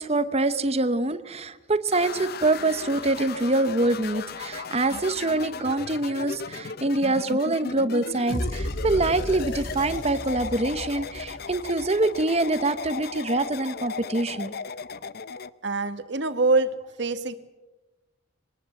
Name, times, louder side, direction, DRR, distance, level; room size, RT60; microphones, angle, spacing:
voice 1, 0.0-14.5, right 2 dB, 30° right, 12 dB, 1.0 m, -25 dB
sound 1, 1.9-15.5, left 5 dB, 50° left, 0.6 m, -36 dB
sound 2, 8.3-12.4, equal, 75° left, 5.4 m, -34 dB
voice 2, 15.6-16.7 17.0-17.3, right 3 dB, 60° right, 11 dB, 1.5 m, -24 dB
23.0 x 19.0 x 7.8 m, 1.1 s
head